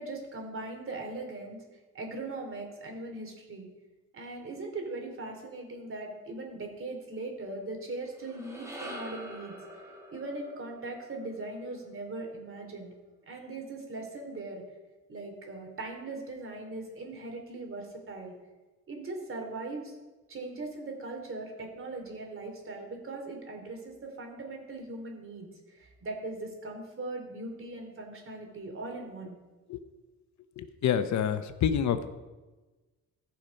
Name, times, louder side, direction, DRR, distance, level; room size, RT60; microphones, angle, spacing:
voice 1, 0.0-1.6 1.9-3.7 4.1-9.5 10.1-12.9 13.3-14.6 15.1-18.3 18.9-20.0 20.3-29.4, right 2 dB, 45° right, 2 dB, 3.2 m, -40 dB
sound 1, 8.1-12.5, equal, 10° right, 2.5 m, -46 dB
voice 2, 30.6-32.1, left 8 dB, 65° left, 10 dB, 0.9 m, -27 dB
15.0 x 5.8 x 5.3 m, 1.2 s
cardioid pair, 90°, 30 cm